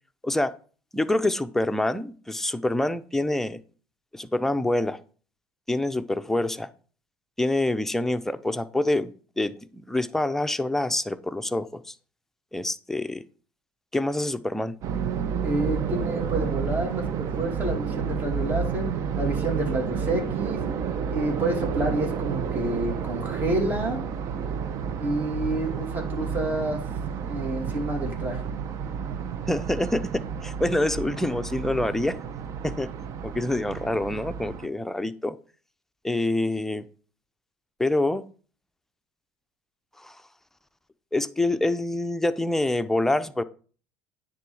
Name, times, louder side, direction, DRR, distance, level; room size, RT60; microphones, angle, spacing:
voice 1, 0.2-0.5 0.9-3.6 4.1-5.0 5.7-6.7 7.4-11.9 12.5-13.2 13.9-14.7 29.5-32.2 32.6-32.9 33.2-35.4 36.0-36.9 37.8-38.2 40.0-40.2 41.1-43.4, left 1 dB, 5° left, 10 dB, 0.6 m, -26 dB
sound 1, 14.8-34.7, right 7 dB, 55° right, 0.8 m, -30 dB
voice 2, 15.4-18.9 19.2-20.6 21.1-24.0 25.0-26.8 27.2-28.4, right 1 dB, 30° right, 1 dB, 2.5 m, -28 dB
9.6 x 3.8 x 4.9 m, 0.39 s
supercardioid pair, 85°, 6 cm